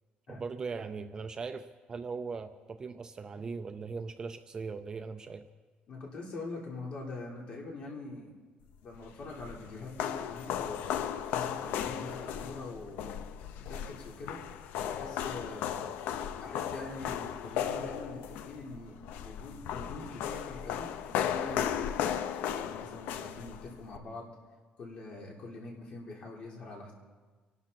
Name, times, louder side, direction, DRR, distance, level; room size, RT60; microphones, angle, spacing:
voice 1, 0.3-5.5, right 4 dB, 25° right, 9 dB, 0.6 m, -39 dB
voice 2, 5.9-8.3 8.8-10.9 11.3-13.1 13.7-14.4 14.8-15.8 16.4-19.0 19.2-21.9 22.4-24.3 24.8-26.9, left 2 dB, 40° left, -2 dB, 4.0 m, -43 dB
sound 1, 8.9-24.0, left 9 dB, 80° left, 0.8 m, -36 dB
27.5 x 12.5 x 4.2 m, 1.4 s
cardioid pair, 170°, 3 cm